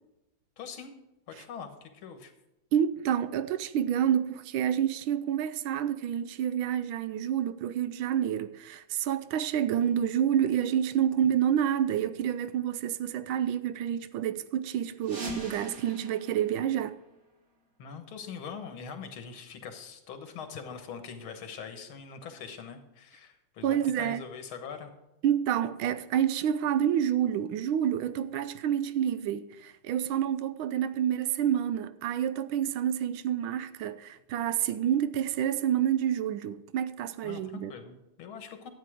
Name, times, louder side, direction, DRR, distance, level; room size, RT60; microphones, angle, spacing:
voice 1, 0.6-0.9 1.3-2.3 17.8-24.9 37.2-38.7, left 6 dB, 90° left, 2.1 m, -43 dB
voice 2, 2.7-17.0 23.6-24.2 25.2-37.7, right 9 dB, 80° right, 1.4 m, -28 dB
sound 1, 15.0-17.6, right 2 dB, 45° right, 2.1 m, -42 dB
12.0 x 8.4 x 4.9 m
omnidirectional pair, 2.2 m